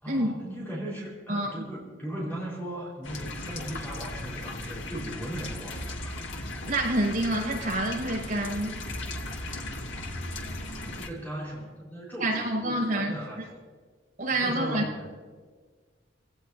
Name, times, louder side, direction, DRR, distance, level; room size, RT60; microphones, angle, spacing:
voice 1, 0.0-6.2 10.7-13.6 14.3-15.1, right 1 dB, 10° left, -5 dB, 4.5 m, -38 dB
voice 2, 1.3-1.6 6.6-8.8 12.2-13.1 14.2-15.1, right 1 dB, 45° right, -4 dB, 6.6 m, -28 dB
sound 1, 3.0-11.1, left 1 dB, 90° left, 1.8 m, -37 dB
27.0 x 17.0 x 2.8 m, 1.5 s
head